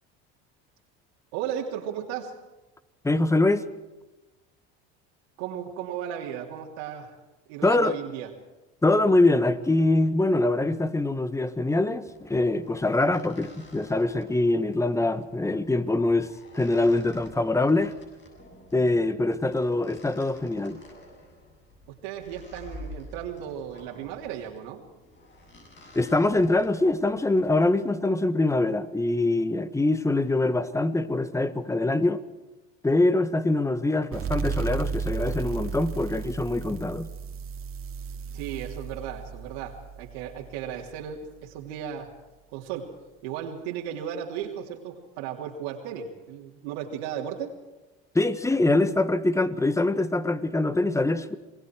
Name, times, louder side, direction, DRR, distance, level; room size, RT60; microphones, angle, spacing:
voice 1, 1.3-2.3 5.4-7.1 7.5-8.3 21.9-24.8 38.3-42.1 42.5-42.9 43.2-47.6, right 9 dB, 85° right, 3.2 m, -35 dB
voice 2, 3.0-3.7 7.6-8.0 8.8-17.9 18.7-20.8 25.9-32.2 32.8-37.1 48.1-51.4, left 2 dB, 10° left, 1.5 m, -24 dB
sound 1, 12.1-27.9, left 1 dB, 35° left, 7.6 m, -49 dB
sound 2, 34.1-41.4, right 5 dB, 45° right, 2.5 m, -34 dB
27.5 x 20.5 x 4.6 m
supercardioid pair, 100°, 31 cm